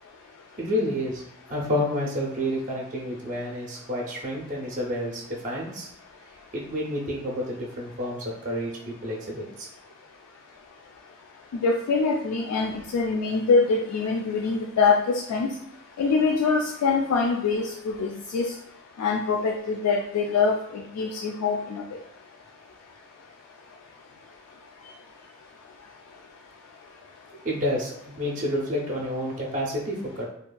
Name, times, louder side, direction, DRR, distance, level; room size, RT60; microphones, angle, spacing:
voice 1, 0.6-1.2 1.5-5.9 6.5-9.4 27.4-30.3, equal, 35° right, -3 dB, 0.5 m, -29 dB
voice 2, 11.5-15.0 15.3-15.5 16.0-18.5 19.0-21.8, left 4 dB, 85° left, 1 dB, 0.3 m, -24 dB
2.7 x 2.4 x 2.2 m, 0.76 s
head